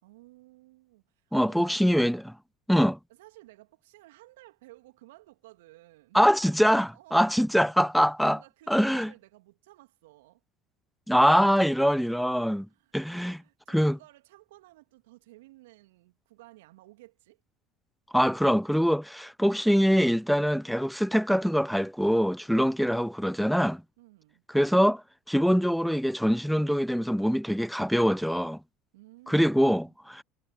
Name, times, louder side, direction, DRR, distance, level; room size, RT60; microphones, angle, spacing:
voice 1, 0.0-2.1 3.1-6.2 6.9-7.5 7.9-10.4 12.7-17.4 24.0-24.4 28.9-29.9, right 19 dB, 70° right, 2.4 m, -55 dB
voice 2, 1.3-2.2 2.7-3.0 6.1-8.4 8.7-9.1 11.1-12.7 12.9-13.4 13.7-14.0 18.1-23.8 24.5-28.6 29.3-30.2, equal, ahead, 0.3 m, -24 dB
figure-of-eight pair, 65°, 0 cm